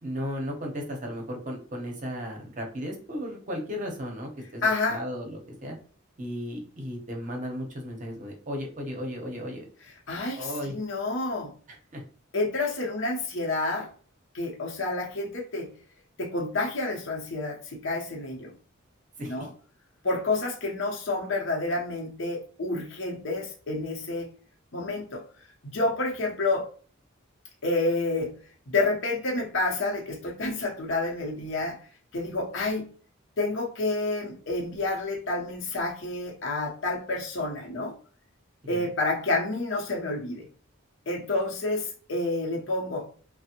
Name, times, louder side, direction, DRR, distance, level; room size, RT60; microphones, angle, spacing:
voice 1, 0.0-5.7 6.2-9.7 10.4-10.7 11.9-12.0 19.2-19.5 38.6-38.9, equal, 35° right, 1 dB, 0.7 m, -35 dB
voice 2, 4.6-5.0 10.1-11.5 12.3-13.9 14.3-15.7 16.2-18.5 19.2-19.5 20.0-24.3 24.7-25.2 25.6-26.7 27.6-28.3 28.7-31.8 32.1-32.9 33.4-37.9 38.7-40.4 41.1-43.1, left 2 dB, 60° left, -1 dB, 0.8 m, -29 dB
3.3 x 2.0 x 2.8 m, 0.42 s
head